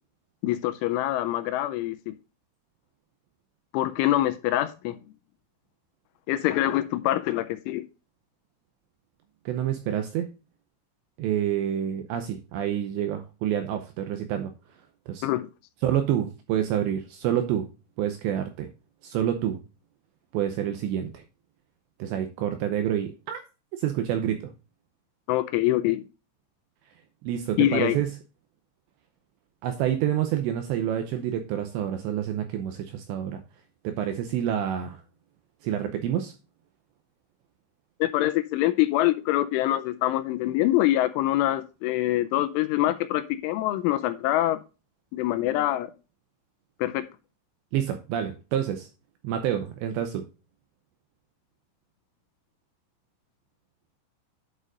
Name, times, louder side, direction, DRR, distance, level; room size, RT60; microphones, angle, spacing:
voice 1, 0.4-2.2 3.7-5.0 6.3-7.8 15.2-15.5 25.3-26.1 27.6-28.0 38.0-44.6 45.1-45.9 46.8-47.1, left 14 dB, 85° left, 3.0 m, -25 dB
voice 2, 9.5-10.3 11.2-14.5 15.1-15.3 15.8-17.7 18.0-18.7 19.0-19.6 20.3-21.2 22.0-23.4 23.8-24.5 27.2-28.1 29.6-33.4 33.8-35.0 35.6-36.3 47.7-48.9 49.2-50.3, right 10 dB, 85° right, 2.6 m, -28 dB
11.0 x 6.7 x 2.5 m
omnidirectional pair, 5.8 m